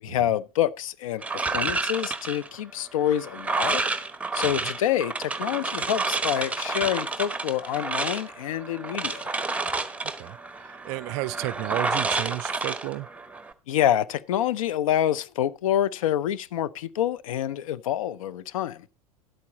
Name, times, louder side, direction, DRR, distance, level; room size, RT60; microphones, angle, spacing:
voice 1, 0.0-3.8 4.3-9.3 13.7-18.9, left 11 dB, 60° left, 0.7 m, -27 dB
sound 1, 1.2-13.5, right 3 dB, 5° right, 1.0 m, -30 dB
voice 2, 10.2-13.1, right 19 dB, 40° right, 0.4 m, -33 dB
11.0 x 8.4 x 4.0 m
figure-of-eight pair, 85°, 19 cm